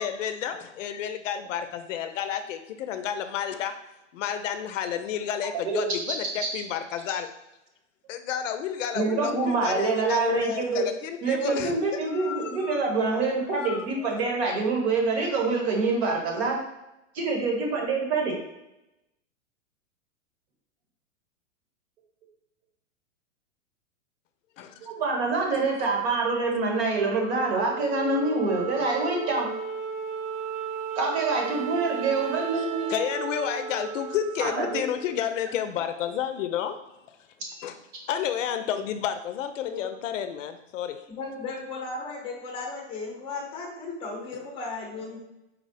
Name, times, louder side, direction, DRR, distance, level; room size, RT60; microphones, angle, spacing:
voice 1, 0.0-3.7 4.1-7.3 8.1-11.8 12.1-12.8 13.5-13.9 14.1-14.3 24.6-24.9 32.9-36.8 37.6-37.8 38.1-41.0 44.3-44.5, left 9 dB, 75° left, 9 dB, 0.5 m, -31 dB
voice 2, 5.6-6.0 8.9-10.8 11.2-16.6 17.1-18.4 24.8-29.5 30.9-32.9 34.4-34.8, right 3 dB, 60° right, 0 dB, 1.3 m, -26 dB
Wind instrument woodwind instrument, 27.2-35.7, right 6 dB, 85° right, 0.7 m, -35 dB
voice 3, 41.2-45.2, left 3 dB, 15° left, 0 dB, 0.7 m, -35 dB
4.2 x 2.0 x 4.0 m, 0.92 s
hypercardioid pair, 140°, 38 cm